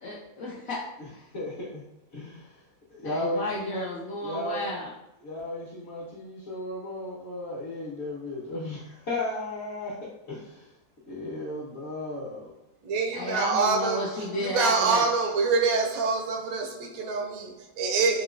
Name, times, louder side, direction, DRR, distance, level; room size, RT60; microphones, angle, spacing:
voice 1, 0.0-0.8 1.1-1.2 3.0-4.9 13.1-15.1, left 1 dB, 65° left, 0.9 m, -33 dB
voice 2, 1.0-1.8 2.1-2.4 2.9-3.9 4.2-4.7 5.2-9.9 10.3-10.4 11.1-12.5, left 1 dB, 45° left, 1.2 m, -34 dB
voice 3, 12.8-18.2, right 4 dB, 70° right, 0.9 m, -26 dB
3.8 x 2.9 x 2.5 m
omnidirectional pair, 1.7 m